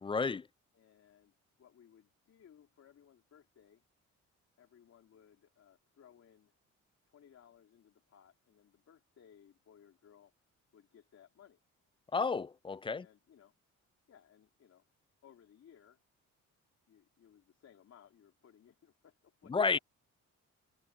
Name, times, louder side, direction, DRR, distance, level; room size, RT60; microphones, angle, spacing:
voice 1, 0.0-0.5 12.1-13.0 19.5-19.8, left 4 dB, 20° left, 0.3 m, -31 dB
voice 2, 0.7-3.8 4.6-6.5 7.1-10.3 10.7-11.6 12.9-13.6 14.1-14.9 15.2-16.0 16.9-19.8, left 9 dB, 60° left, 3.5 m, -62 dB
cardioid pair, 90°, 30 cm